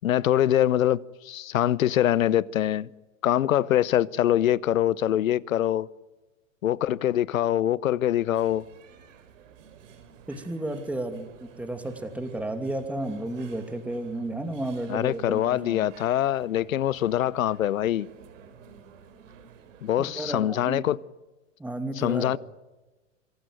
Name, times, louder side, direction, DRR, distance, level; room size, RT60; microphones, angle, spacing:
voice 1, 0.0-2.9 3.2-5.9 6.6-8.6 14.9-18.1 19.8-21.0 22.0-22.4, left 12 dB, 90° left, 0.9 m, -24 dB
sound 1, 8.3-20.4, right 7 dB, 70° right, 4.1 m, -52 dB
voice 2, 10.3-15.9 20.0-20.8 21.6-22.4, right 1 dB, 5° right, 2.6 m, -33 dB
26.0 x 17.5 x 9.2 m
hypercardioid pair, 135°, 39 cm